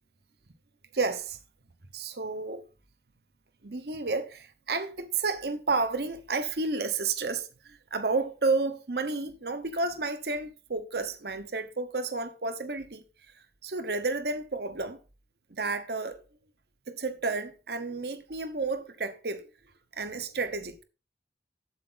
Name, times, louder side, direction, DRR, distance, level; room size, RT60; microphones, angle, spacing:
voice 1, 0.9-1.4 1.9-2.6 3.6-13.0 13.6-15.0 15.5-16.2 16.9-19.4 19.9-20.8, right 3 dB, 65° right, 1.0 m, -31 dB
8.4 x 7.6 x 4.0 m
head